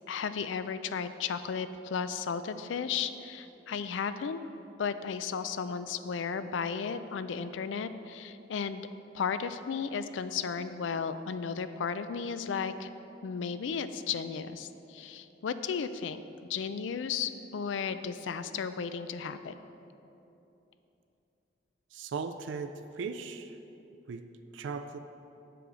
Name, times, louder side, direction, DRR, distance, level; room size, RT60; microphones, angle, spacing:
voice 1, 0.1-4.4 4.8-8.9 9.1-12.9 13.2-16.2 16.5-19.6, left 6 dB, 90° left, 12 dB, 0.4 m, -34 dB
voice 2, 21.9-23.6 24.1-24.3 24.5-25.0, right 5 dB, 85° right, 9 dB, 0.4 m, -38 dB
7.8 x 6.7 x 4.9 m, 2.9 s
head